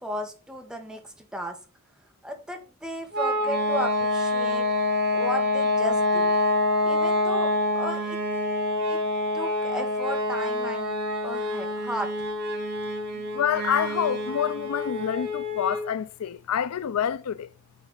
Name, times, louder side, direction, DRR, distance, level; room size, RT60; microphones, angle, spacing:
voice 1, 0.0-1.6 2.2-4.7 5.1-6.3 6.8-8.2 8.9-9.0 9.3-11.0 11.2-12.3, equal, 5° right, 1.5 m, -35 dB
sound 1, 3.1-15.9, left 2 dB, 50° right, 2.1 m, -26 dB
voice 2, 13.1-17.5, left 9 dB, 75° left, 0.4 m, -27 dB
9.2 x 4.4 x 3.8 m
head